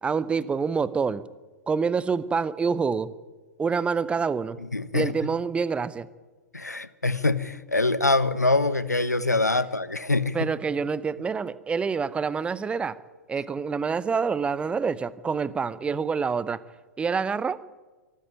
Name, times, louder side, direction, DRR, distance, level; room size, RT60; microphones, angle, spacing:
voice 1, 0.0-1.2 1.7-3.1 3.6-4.6 4.9-6.1 10.3-13.0 13.3-16.6 17.0-17.6, right 5 dB, 15° right, 18 dB, 0.8 m, -27 dB
voice 2, 4.7-5.1 6.5-10.5, left 2 dB, 85° left, 16 dB, 1.0 m, -24 dB
24.0 x 13.0 x 8.9 m, 1.3 s
figure-of-eight pair, 100°, 9 cm